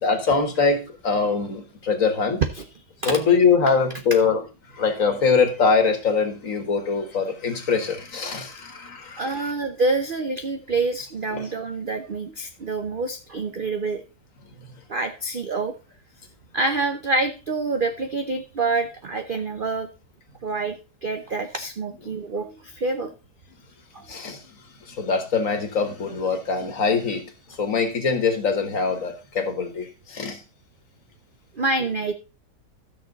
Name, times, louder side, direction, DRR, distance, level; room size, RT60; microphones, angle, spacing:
voice 1, 0.0-2.4 3.1-4.4 4.7-9.5 11.3-11.5 24.1-24.4 24.9-27.2 27.6-30.4, left 5 dB, 50° left, 6 dB, 1.8 m, -23 dB
voice 2, 9.2-14.0 14.9-15.7 16.5-19.9 20.4-23.1 23.9-24.0 31.5-32.1, right 3 dB, 50° right, 7 dB, 0.6 m, -27 dB
13.0 x 6.5 x 3.9 m, 0.32 s
omnidirectional pair, 1.8 m